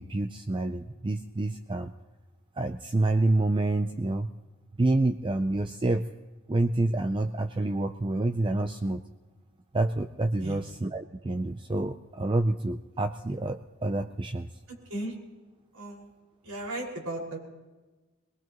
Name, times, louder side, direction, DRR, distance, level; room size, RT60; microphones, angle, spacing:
voice 1, 0.0-1.9 2.6-4.3 4.8-6.0 6.5-9.0 9.7-14.5, right 2 dB, 20° right, 8 dB, 0.5 m, -28 dB
voice 2, 14.7-15.1 15.7-16.1 16.4-17.4, right 1 dB, 85° right, -2 dB, 5.4 m, -36 dB
22.5 x 20.5 x 3.0 m, 1.2 s
head